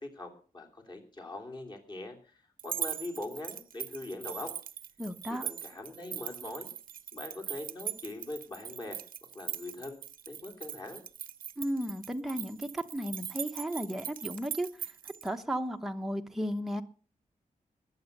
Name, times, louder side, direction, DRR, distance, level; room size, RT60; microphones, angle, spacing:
voice 1, 0.0-4.5 5.3-6.7 7.1-9.0 9.3-10.0 10.3-11.0, left 2 dB, 30° left, 2 dB, 3.1 m, -42 dB
sound 1, 2.6-15.3, right 9 dB, 85° right, 0.7 m, -41 dB
voice 2, 5.0-5.4 11.6-14.9 15.2-16.8, equal, ahead, 5 dB, 0.9 m, -34 dB
20.5 x 8.0 x 6.6 m, 0.40 s
wide cardioid pair, 175°, 14 cm